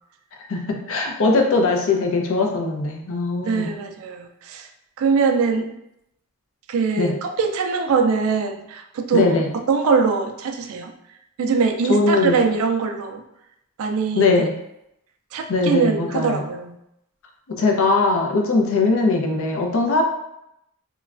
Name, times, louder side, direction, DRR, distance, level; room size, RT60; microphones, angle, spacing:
voice 1, 0.5-3.7 7.0-7.1 9.1-9.5 11.9-12.4 14.1-14.5 15.5-16.5 17.6-20.0, left 3 dB, 60° left, 2 dB, 0.5 m, -20 dB
voice 2, 3.4-4.7 5.0-5.7 6.7-9.4 9.7-10.9 11.4-13.2 13.8-14.5 15.3-16.8, right 5 dB, 65° right, 5 dB, 0.3 m, -22 dB
3.0 x 2.2 x 2.3 m, 0.81 s
head